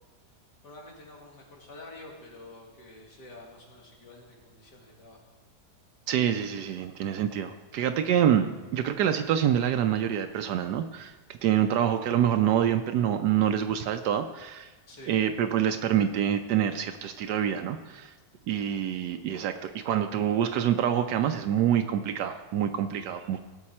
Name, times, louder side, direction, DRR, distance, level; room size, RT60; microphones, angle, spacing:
voice 1, 0.6-5.2 14.9-15.2, left 2 dB, 80° left, -1 dB, 2.6 m, -48 dB
voice 2, 6.1-8.5 8.7-11.1 11.4-14.7 15.1-18.1 18.5-23.4, right 10 dB, 80° right, 7 dB, 1.2 m, -26 dB
17.0 x 6.7 x 4.3 m, 1.2 s
omnidirectional pair, 1.8 m